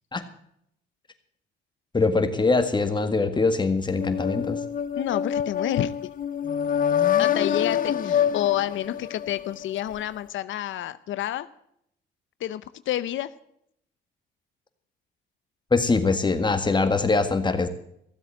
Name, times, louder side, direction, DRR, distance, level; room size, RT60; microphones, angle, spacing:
voice 1, 1.9-4.6 15.7-17.7, left 3 dB, 25° left, 8 dB, 1.8 m, -23 dB
sound 1, 3.9-9.8, left 9 dB, 45° left, 0.8 m, -26 dB
voice 2, 5.0-5.9 7.2-11.5 12.4-13.3, left 12 dB, 75° left, 15 dB, 0.7 m, -29 dB
15.5 x 8.0 x 7.6 m, 0.72 s
cardioid pair, 90°, 20 cm